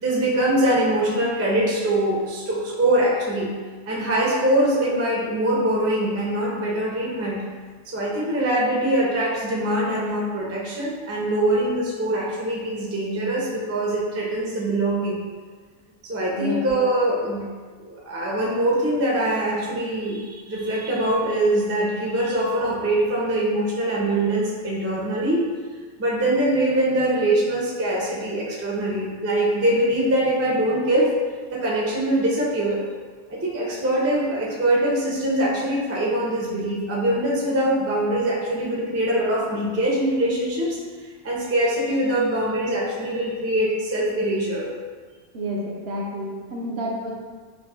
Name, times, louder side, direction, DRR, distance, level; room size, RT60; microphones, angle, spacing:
voice 1, 0.0-3.5 3.9-7.4 7.9-15.2 16.0-17.4 17.8-25.4 26.0-31.1 31.5-32.8 33.3-40.8 41.2-44.7, right 1 dB, 20° right, -5 dB, 0.4 m, -23 dB
voice 2, 45.3-47.1, equal, 65° right, -2 dB, 0.8 m, -29 dB
5.0 x 2.1 x 2.3 m, 1.5 s
omnidirectional pair, 1.2 m